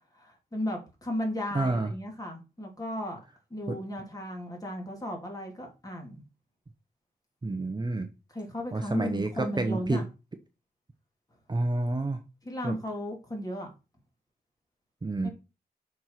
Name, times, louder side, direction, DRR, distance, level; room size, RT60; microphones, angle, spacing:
voice 1, 0.1-3.2 3.5-6.2 8.3-10.0 12.4-13.7 15.2-15.3, left 1 dB, 20° left, 1 dB, 3.1 m, -35 dB
voice 2, 1.5-1.9 3.7-3.8 7.4-8.1 8.7-10.1 11.5-12.2 12.6-12.8 15.0-15.3, right 2 dB, 25° right, 6 dB, 0.9 m, -29 dB
7.2 x 4.8 x 5.8 m, 0.30 s
wide cardioid pair, 105°, 16 cm